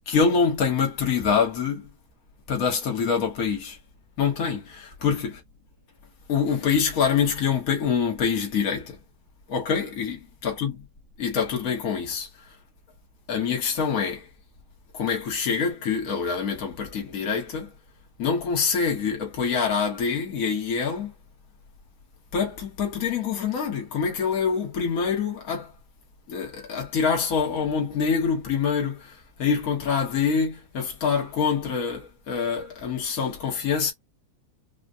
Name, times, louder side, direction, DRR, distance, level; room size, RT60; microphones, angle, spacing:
voice 1, 0.1-1.9 2.5-3.8 4.2-5.3 6.3-9.0 9.5-10.7 11.2-12.5 13.3-14.3 14.9-17.7 18.2-21.1 22.3-25.7 26.3-33.9, left 6 dB, 55° left, 0.9 m, -25 dB
4.9 x 2.2 x 2.5 m
omnidirectional pair, 3.4 m